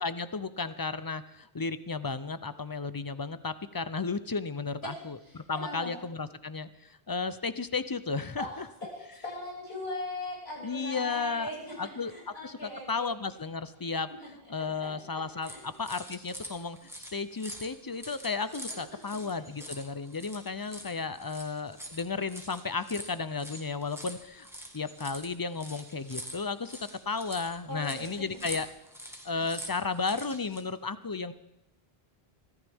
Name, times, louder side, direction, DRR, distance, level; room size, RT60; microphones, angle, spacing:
voice 1, 0.0-8.5 10.6-11.5 11.8-14.1 14.5-16.8 17.1-24.5 24.7-28.7 29.2-31.3, left 4 dB, 30° left, 13 dB, 0.5 m, -34 dB
voice 2, 5.2-5.9 8.4-13.1 14.1-14.3 14.6-15.6 18.6-19.2 27.7-28.4 29.3-29.4, left 1 dB, 80° left, -4 dB, 6.6 m, -40 dB
sound 1, 15.4-30.6, equal, 5° right, 1.6 m, -45 dB
24.5 x 14.0 x 3.6 m, 0.84 s
omnidirectional pair, 1.0 m